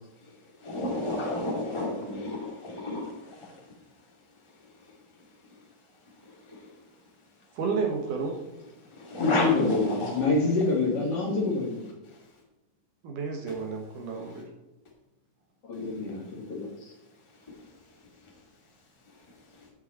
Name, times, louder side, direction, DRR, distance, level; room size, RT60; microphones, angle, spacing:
voice 1, 0.2-3.7 4.4-5.3 6.2-6.8 8.8-10.2 12.0-12.2 13.5-13.6 14.1-14.4 15.7-16.3 16.8-16.9 17.3-17.7 18.2-18.3 19.1-19.7, left 2 dB, 20° left, -2 dB, 0.8 m, -34 dB
voice 2, 1.7-2.2 9.2-11.8 15.7-16.7, left 3 dB, 45° left, -3 dB, 2.3 m, -27 dB
voice 3, 7.6-8.4 13.0-14.5, right 5 dB, 60° right, 2 dB, 2.3 m, -31 dB
15.0 x 5.7 x 4.4 m, 1.0 s
omnidirectional pair, 5.2 m